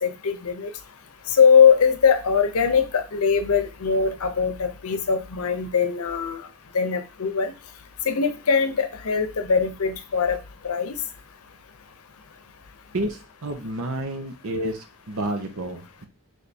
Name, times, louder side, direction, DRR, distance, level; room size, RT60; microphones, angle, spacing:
voice 1, 0.0-0.7 1.4-6.4 6.7-7.5 8.1-10.4 10.6-10.9, left 6 dB, 75° left, 8 dB, 0.7 m, -21 dB
voice 2, 12.9-16.1, right 1 dB, 65° right, 4 dB, 0.7 m, -30 dB
3.4 x 3.2 x 4.1 m, 0.30 s
head